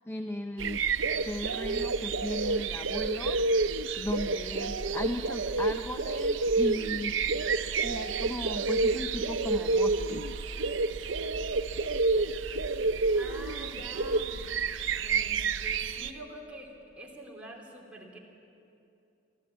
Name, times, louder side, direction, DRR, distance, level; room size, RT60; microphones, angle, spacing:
voice 1, 0.1-0.9 1.2-3.7 3.9-7.2 7.8-10.3, left 1 dB, 15° left, 6 dB, 0.6 m, -37 dB
sound 1, 0.6-16.1, right 3 dB, 85° right, 0.7 m, -29 dB
voice 2, 13.1-14.4 15.0-18.2, right 1 dB, 5° right, -3 dB, 3.1 m, -45 dB
24.5 x 15.0 x 8.6 m, 2.7 s
head